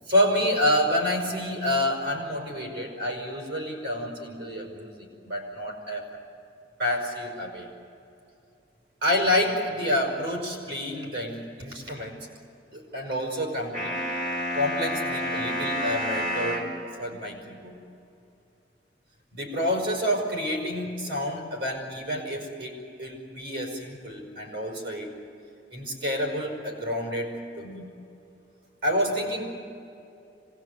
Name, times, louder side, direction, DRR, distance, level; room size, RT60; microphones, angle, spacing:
voice 1, 0.1-6.1 6.8-7.7 9.0-12.3 12.7-14.0 14.5-17.8 19.3-25.2 25.7-27.9 28.8-29.5, left 1 dB, 85° right, 0 dB, 5.3 m, -28 dB
sound 1, 13.7-16.7, equal, 45° right, 4.7 m, -29 dB
26.0 x 20.0 x 8.1 m, 2.7 s
head